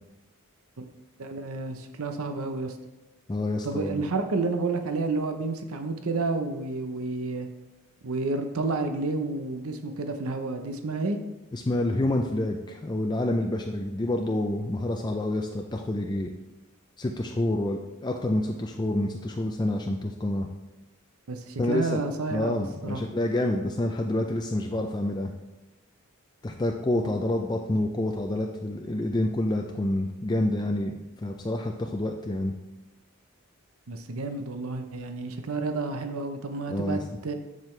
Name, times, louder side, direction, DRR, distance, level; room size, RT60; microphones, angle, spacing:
voice 1, 1.2-2.7 3.6-7.5 8.0-11.2 21.3-23.0 27.0-27.1 33.9-37.3, right 3 dB, 75° right, 6 dB, 0.7 m, -30 dB
voice 2, 3.3-4.0 11.5-16.3 17.0-20.5 21.6-22.0 22.3-25.3 26.4-32.5 36.7-37.0, left 1 dB, 20° left, 3 dB, 0.4 m, -28 dB
7.6 x 7.4 x 3.2 m, 1.0 s
head